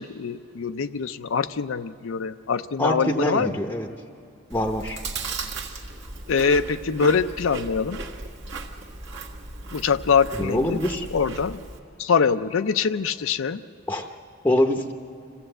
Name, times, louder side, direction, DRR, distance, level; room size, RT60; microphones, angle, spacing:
voice 1, 0.0-3.5 6.3-8.0 9.7-10.8 11.1-11.6 12.0-13.6, left 5 dB, 75° left, 10 dB, 0.5 m, -24 dB
voice 2, 2.8-3.9 4.5-5.0 10.4-11.1 13.9-14.1 14.4-14.9, left 1 dB, 10° left, 4 dB, 0.7 m, -24 dB
Chewing mastication, 4.5-11.8, right 3 dB, 60° right, 1.7 m, -36 dB
26.0 x 15.5 x 7.8 m, 2.6 s
head